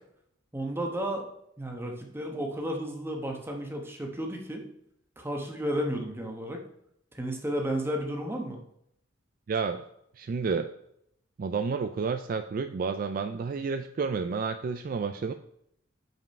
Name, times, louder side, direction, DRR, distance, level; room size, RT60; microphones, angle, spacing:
voice 1, 0.5-1.2 1.6-4.6 5.2-6.6 7.1-8.6, equal, 10° right, 2 dB, 1.0 m, -32 dB
voice 2, 9.5-9.8 10.2-10.7 11.4-15.3, right 5 dB, 45° right, 9 dB, 0.3 m, -30 dB
5.4 x 5.3 x 5.2 m, 0.74 s
head